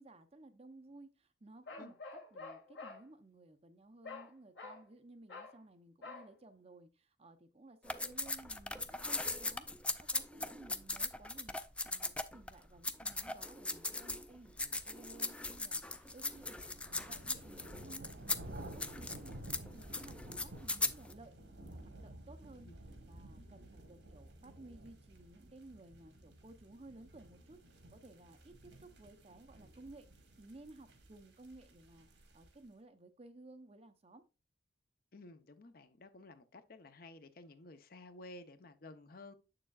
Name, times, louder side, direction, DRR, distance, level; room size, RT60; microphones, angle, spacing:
voice 1, 0.0-11.5 11.8-18.1 18.3-19.5 19.7-21.3 21.7-22.7 23.1-34.2, right 2 dB, 35° right, 0.7 m, -57 dB
Bark, 1.7-3.0 4.0-4.3 4.6-4.8 5.3-5.6 6.0-6.3, left 3 dB, 75° left, 2.0 m, -48 dB
sound 1, 7.9-12.5 12.8-14.3 14.6-21.1, left 2 dB, 5° left, 0.3 m, -39 dB
sound 2, 15.1-32.7, right 1 dB, 70° right, 1.6 m, -53 dB
voice 2, 35.1-39.3, left 2 dB, 55° left, 0.7 m, -53 dB
7.4 x 6.7 x 2.4 m
head